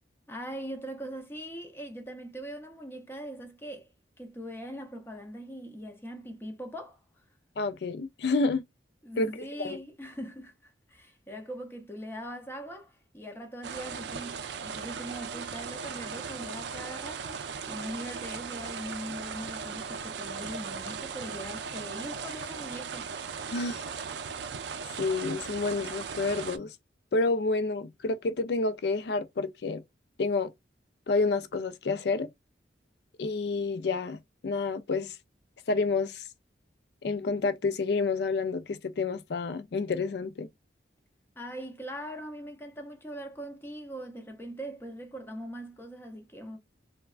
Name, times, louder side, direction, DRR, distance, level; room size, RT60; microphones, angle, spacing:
voice 1, 0.3-3.9 4.2-7.0 9.0-23.1 41.4-46.6, equal, 10° left, 0.5 m, -41 dB
voice 2, 7.6-8.6 9.2-9.8 23.5-23.8 25.0-26.8 27.1-29.8 30.2-30.5 31.1-32.3 33.2-35.2 35.7-36.2 37.0-40.5, left 3 dB, 60° left, 0.4 m, -29 dB
sound 1, 13.6-26.6, right 6 dB, 70° right, 0.4 m, -38 dB
3.3 x 2.1 x 2.4 m
head